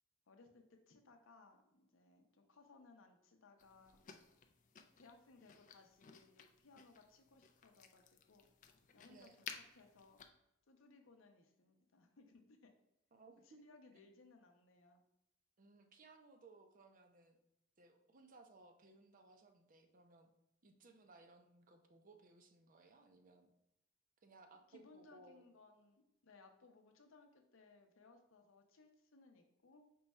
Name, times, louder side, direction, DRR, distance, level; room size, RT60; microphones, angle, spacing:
voice 1, 0.3-4.0 5.0-8.5 8.9-9.3 9.5-10.2 10.7-12.7 13.4-15.0 24.7-29.8, left 3 dB, 70° left, 4 dB, 0.7 m, -64 dB
sound 1, 3.6-10.3, left 7 dB, 40° left, 0.4 m, -57 dB
voice 2, 13.1-13.6 15.6-17.4 17.8-20.3 20.6-23.5 24.2-25.4, right 3 dB, 40° right, 6 dB, 0.5 m, -63 dB
5.3 x 2.3 x 4.1 m, 0.85 s
head